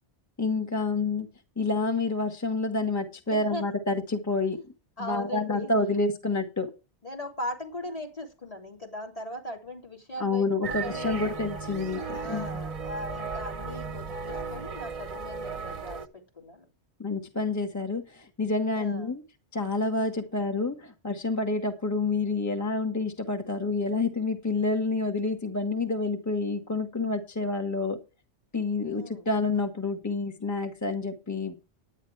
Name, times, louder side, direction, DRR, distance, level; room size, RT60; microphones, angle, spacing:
voice 1, 0.4-1.3 1.6-4.7 5.0-6.7 10.2-12.5 17.0-19.2 19.5-28.0 28.5-31.5, left 3 dB, 15° left, 5 dB, 1.4 m, -28 dB
voice 2, 3.3-3.7 4.4-4.5 5.0-6.1 7.0-11.4 12.1-16.7 18.7-19.1 28.9-29.3, left 1 dB, 30° left, 0 dB, 3.2 m, -39 dB
sound 1, 10.6-16.1, right 5 dB, 35° right, 0.8 m, -36 dB
10.0 x 9.9 x 4.6 m, 0.29 s
omnidirectional pair, 1.2 m